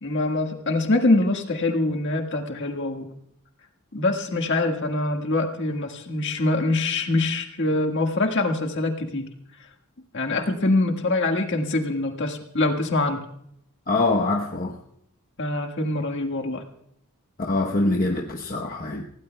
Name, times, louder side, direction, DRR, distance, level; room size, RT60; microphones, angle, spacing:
voice 1, 0.0-3.1 3.9-9.3 10.1-13.2 15.4-16.6, left 2 dB, 55° left, 3 dB, 1.7 m, -24 dB
voice 2, 13.9-14.8 17.5-19.0, left 2 dB, 40° left, 0 dB, 1.0 m, -24 dB
29.0 x 17.0 x 2.3 m, 0.72 s
head